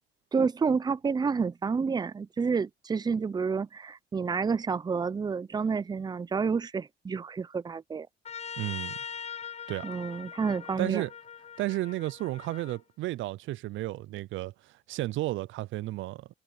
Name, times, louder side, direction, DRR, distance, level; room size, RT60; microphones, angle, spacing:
voice 1, 0.3-8.1 9.8-11.0, right 5 dB, 20° right, 0.4 m, -29 dB
Trumpet, 8.2-12.8, left 7 dB, 35° left, 0.8 m, -41 dB
voice 2, 8.6-8.9 9.7-9.9 10.8-11.1 11.6-16.3, right 17 dB, 75° right, 0.4 m, -33 dB
cardioid pair, 90°, 20 cm